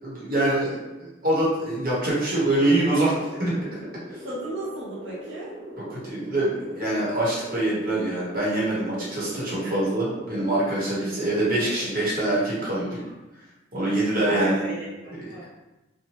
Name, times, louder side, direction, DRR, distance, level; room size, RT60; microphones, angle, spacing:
voice 1, 0.0-3.1 3.4-3.5 5.9-13.0 13.7-14.6, right 1 dB, 50° right, -7 dB, 1.0 m, -24 dB
sound 1, 2.1-12.1, right 1 dB, 20° right, 0.5 m, -40 dB
voice 2, 4.2-5.5 9.6-9.8 14.2-15.4, right 1 dB, 80° right, -7 dB, 0.6 m, -34 dB
2.9 x 2.2 x 2.9 m, 1.0 s
head